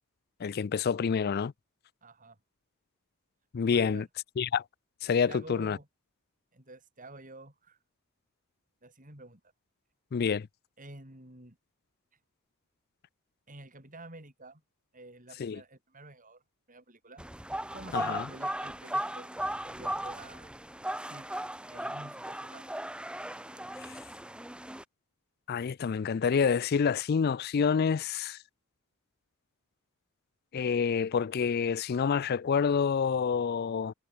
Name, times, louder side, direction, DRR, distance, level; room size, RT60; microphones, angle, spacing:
voice 1, 0.4-1.5 3.5-4.0 4.4-4.6 5.0-5.8 10.1-10.5 15.4-15.6 17.9-18.3 25.5-28.4 30.5-33.9, left 6 dB, 45° left, 0.4 m, -28 dB
voice 2, 2.0-2.4 3.7-4.1 5.3-5.9 6.5-7.8 8.8-9.4 10.8-11.6 13.5-14.6 14.9-16.4 16.7-17.2 17.7-19.3 19.6-20.5 20.9-21.3 21.7-22.7, right 2 dB, 35° right, 6.1 m, -49 dB
sound 1, 17.2-24.8, right 1 dB, 5° right, 2.0 m, -37 dB
head